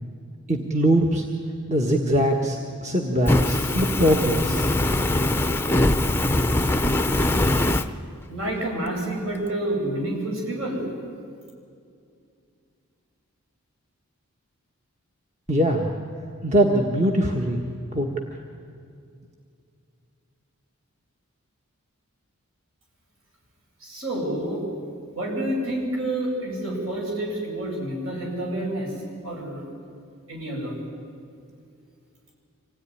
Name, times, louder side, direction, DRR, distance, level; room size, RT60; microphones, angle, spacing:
voice 1, 0.5-1.2 1.7-4.6 15.5-15.9 16.4-18.1, right 1 dB, 30° right, 1 dB, 1.4 m, -22 dB
Fire, 3.3-7.9, left 1 dB, 10° left, 0.6 m, -22 dB
voice 2, 8.3-10.9 23.8-24.6 25.1-28.9 29.2-29.6 30.3-30.7, right 1 dB, 70° right, -1 dB, 7.9 m, -28 dB
26.0 x 17.0 x 9.9 m, 2.3 s
head